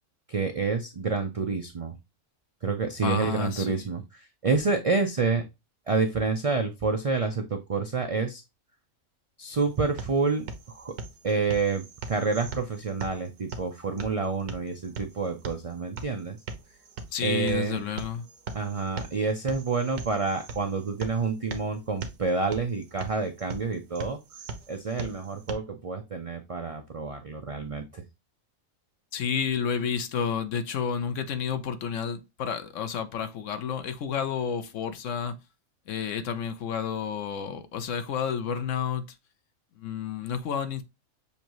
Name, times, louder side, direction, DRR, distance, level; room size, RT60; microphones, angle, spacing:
voice 1, 0.3-1.9 2.6-5.4 5.9-8.4 9.4-10.9 11.2-16.4 17.2-17.8 18.5-24.2 24.7-28.0, right 4 dB, 50° right, 0.4 m, -28 dB
voice 2, 3.0-3.9 17.1-18.3 29.1-35.4 35.9-39.2 39.8-40.8, left 7 dB, 65° left, 1.0 m, -30 dB
sound 1, 9.5-25.5, right 4 dB, 70° right, 1.2 m, -41 dB
6.8 x 2.6 x 3.0 m
omnidirectional pair, 1.5 m